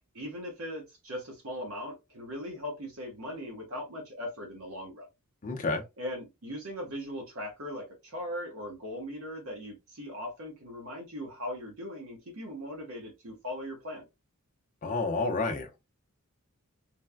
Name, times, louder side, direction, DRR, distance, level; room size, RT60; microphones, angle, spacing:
voice 1, 0.1-5.1 6.0-14.0, left 1 dB, 65° right, 1.0 m, -39 dB
voice 2, 5.4-5.8 14.8-15.7, left 3 dB, 35° left, 0.6 m, -29 dB
3.2 x 2.1 x 2.2 m
head